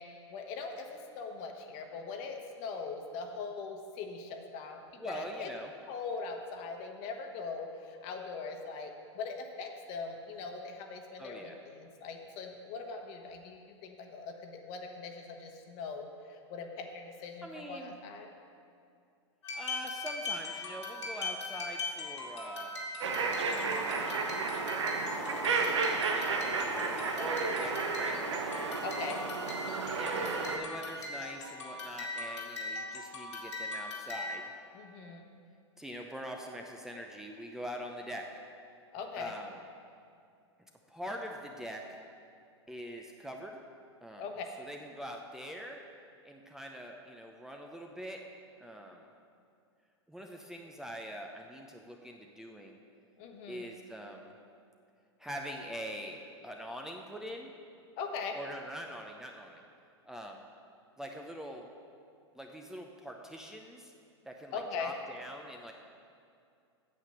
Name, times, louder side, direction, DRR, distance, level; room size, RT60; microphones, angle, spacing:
voice 1, 0.0-5.5 5.9-18.3 28.8-29.2 34.7-35.2 38.9-39.3 44.2-44.4 53.2-53.7 58.0-58.4 64.5-64.9, left 4 dB, 45° left, 3 dB, 1.3 m, -41 dB
voice 2, 5.0-5.7 11.2-11.6 17.4-17.9 19.5-22.7 23.9-24.4 25.5-28.3 30.0-34.5 35.8-38.3 39.2-39.5 40.9-41.8 42.7-43.6 44.0-44.3 44.6-45.8 46.2-48.2 48.6-49.1 50.1-52.8 53.5-54.3 55.2-57.5 58.3-59.6 60.1-60.4 61.0-61.7 62.3-63.9 64.2-65.7, equal, 5° right, 1 dB, 0.7 m, -44 dB
sound 1, 19.4-34.5, left 2 dB, 75° left, 2.4 m, -40 dB
sound 2, 23.0-30.6, right 4 dB, 75° right, 1.1 m, -32 dB
8.8 x 7.5 x 6.6 m, 2.4 s
hypercardioid pair, 105°, 15 cm